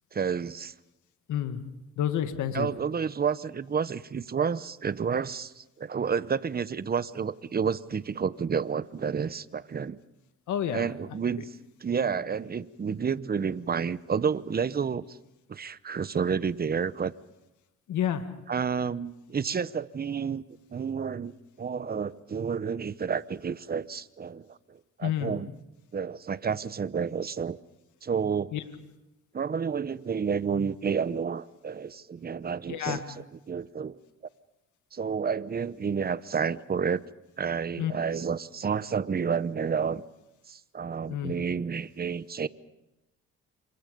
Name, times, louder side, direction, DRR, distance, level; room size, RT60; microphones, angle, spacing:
voice 1, 0.1-0.7 2.5-10.0 10.7-11.6 11.8-15.2 15.5-17.1 18.5-20.4 20.7-21.3 21.6-25.5 25.9-27.6 28.0-28.5 29.3-34.0 34.9-37.0 37.4-40.0 40.5-42.5, right 6 dB, 30° right, 16 dB, 0.9 m, -30 dB
voice 2, 1.3-1.6 2.0-2.7 10.5-10.9 17.9-18.2 25.0-25.4 28.5-28.6 32.7-33.0 37.8-37.9 41.1-41.3, left 10 dB, 75° left, 8 dB, 1.9 m, -29 dB
29.5 x 26.5 x 5.3 m, 0.94 s
cardioid pair, 90°, 30 cm